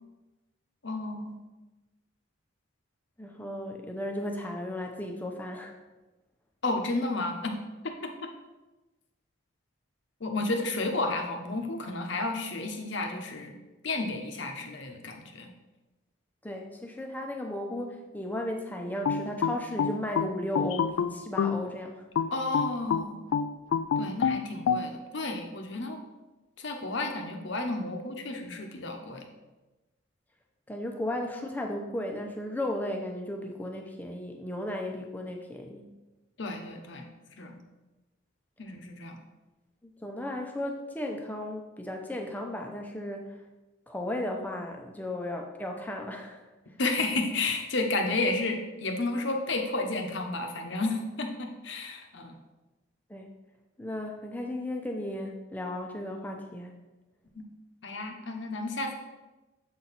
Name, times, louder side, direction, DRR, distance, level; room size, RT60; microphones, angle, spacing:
voice 1, 0.8-1.4 6.6-7.6 7.8-8.3 10.2-13.6 13.8-15.5 22.3-23.2 24.0-26.0 26.6-29.3 36.4-37.1 37.4-37.6 38.6-39.2 46.8-52.4 57.3-57.4 57.8-59.0, left 2 dB, 60° left, 4 dB, 0.8 m, -32 dB
voice 2, 3.2-5.7 16.4-22.0 30.7-35.8 39.8-43.4 43.9-46.4 53.1-53.3 53.8-56.7, left 1 dB, 10° left, 2 dB, 0.6 m, -35 dB
sound 1, 19.0-21.6 22.2-24.9, left 6 dB, 80° left, 0.3 m, -27 dB
7.5 x 4.3 x 4.1 m, 1.1 s
head